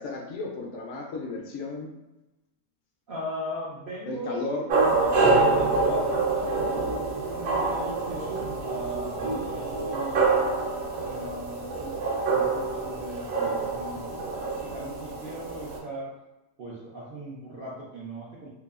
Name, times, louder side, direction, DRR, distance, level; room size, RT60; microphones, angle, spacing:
voice 1, 0.0-1.9 4.1-4.6, left 3 dB, 70° left, -1 dB, 0.8 m, -34 dB
voice 2, 3.1-4.4 4.8-6.9 7.2-10.5 10.9-16.1 16.6-18.5, equal, 60° right, -6 dB, 0.5 m, -38 dB
sound 1, 4.7-15.8, right 3 dB, 85° right, 1.0 m, -26 dB
2.7 x 2.2 x 2.3 m, 0.99 s
omnidirectional pair, 1.4 m